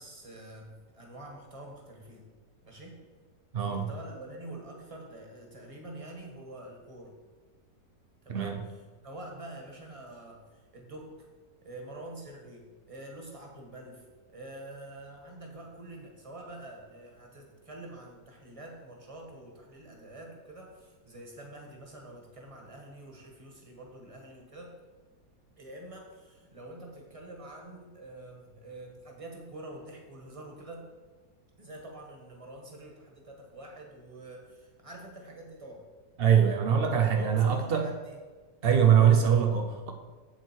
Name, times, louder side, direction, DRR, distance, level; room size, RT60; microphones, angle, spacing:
voice 1, 0.0-2.3 2.6-3.0 3.6-7.2 8.2-11.1 11.6-24.7 25.6-30.9 31.6-35.9 37.1-38.2 38.9-39.1, right 1 dB, 20° right, 0 dB, 1.5 m, -46 dB
voice 2, 3.5-3.9 8.3-8.6 36.2-37.9 38.6-39.9, right 8 dB, 80° right, 4 dB, 0.5 m, -23 dB
8.0 x 7.6 x 4.5 m, 1.4 s
omnidirectional pair, 2.0 m